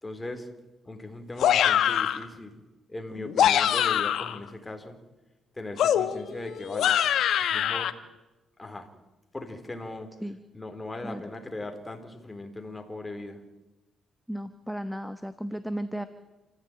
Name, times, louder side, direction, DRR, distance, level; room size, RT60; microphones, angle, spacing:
voice 1, 0.0-0.5 0.9-2.6 2.9-5.0 5.5-7.1 7.4-7.9 8.6-8.9 9.3-10.1 10.5-13.4, left 2 dB, 15° left, 5 dB, 4.0 m, -38 dB
sound 1, 1.4-2.2 3.2-4.4 5.8-7.9, left 10 dB, 75° left, 1.4 m, -24 dB
voice 2, 14.3-16.1, equal, ahead, 10 dB, 1.2 m, -34 dB
28.5 x 14.5 x 9.0 m, 1.1 s
cardioid pair, 90°, 0 cm